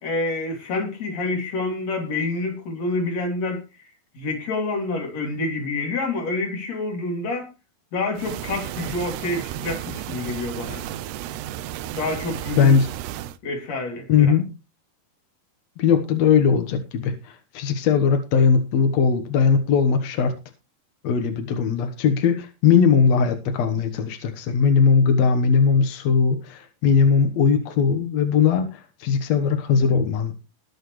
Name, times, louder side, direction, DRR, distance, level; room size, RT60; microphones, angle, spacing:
voice 1, 0.0-3.6 4.1-7.5 7.9-10.8 12.0-12.8 13.4-14.4, left 2 dB, 45° left, 3.6 m, -27 dB
sound 1, 8.2-13.4, right 12 dB, 80° right, 2.7 m, -33 dB
voice 2, 12.6-12.9 14.1-14.4 15.8-20.3 21.0-30.3, left 6 dB, 65° left, 1.7 m, -19 dB
21.0 x 7.6 x 3.1 m
omnidirectional pair, 4.7 m